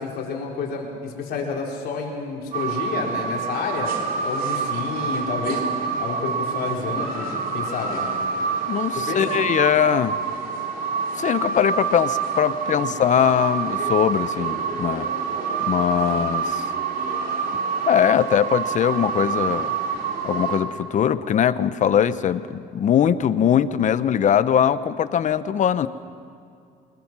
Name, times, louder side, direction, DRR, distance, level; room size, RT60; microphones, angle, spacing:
voice 1, 0.0-5.6 6.0-8.1 9.0-9.3 12.8-13.0, left 5 dB, 70° left, -1 dB, 4.1 m, -30 dB
sound 1, 2.5-20.6, right 5 dB, 60° right, 3.2 m, -27 dB
voice 2, 8.7-10.2 11.2-15.1 15.7-16.6 17.9-19.7 20.2-25.9, left 9 dB, 45° left, 14 dB, 0.8 m, -21 dB
24.5 x 20.5 x 6.1 m, 2.4 s
cardioid pair, 110°, 17 cm